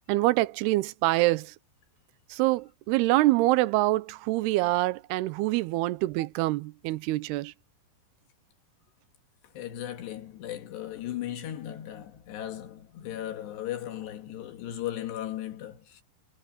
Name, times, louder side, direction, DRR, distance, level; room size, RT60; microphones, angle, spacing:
voice 1, 0.1-1.5 2.3-7.5, right 19 dB, 80° right, 2.6 m, -25 dB
voice 2, 9.4-16.0, left 12 dB, 75° left, 3.7 m, -37 dB
omnidirectional pair, 5.0 m